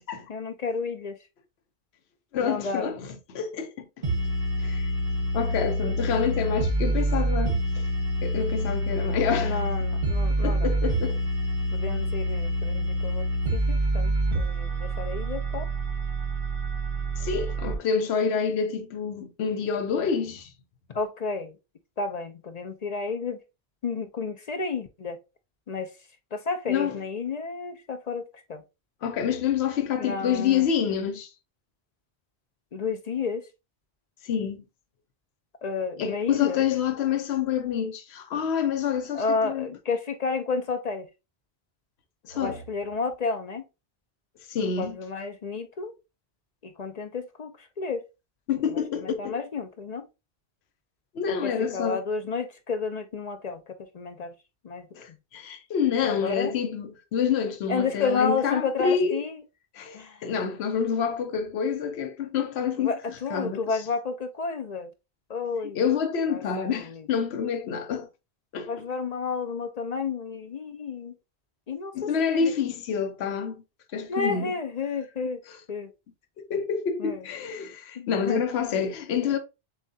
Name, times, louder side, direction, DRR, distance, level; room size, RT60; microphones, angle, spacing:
voice 1, 0.3-1.2 2.4-2.9 9.4-10.7 11.7-15.7 20.9-21.6 22.0-23.4 23.8-25.2 25.7-25.9 26.3-28.6 30.0-30.7 32.7-33.5 35.6-36.6 39.1-41.1 42.3-43.6 44.8-45.9 46.6-48.0 48.6-50.1 51.3-54.3 54.6-54.9 56.0-56.5 57.7-59.4 59.9-60.2 62.8-64.9 65.3-65.8 66.3-67.1 68.7-71.1 71.7-72.5 74.1-75.4 75.7-75.9 77.0-77.2 78.0-78.4, left 4 dB, 50° left, 0.6 m, -31 dB
voice 2, 2.3-4.0 4.6-4.9 5.3-7.8 8.2-9.6 10.4-11.2 17.2-20.5 26.7-27.0 29.0-31.3 34.2-34.6 36.0-39.7 42.2-42.6 44.5-45.0 48.5-49.4 51.1-52.0 54.9-59.2 59.7-62.9 63.3-63.6 65.7-68.1 68.5-68.7 71.9-73.6 73.9-74.5 76.4-79.4, left 7 dB, 80° left, 0.9 m, -27 dB
sound 1, 4.0-17.7, right 1 dB, 55° right, 1.3 m, -27 dB
7.0 x 2.3 x 2.6 m
omnidirectional pair, 1.1 m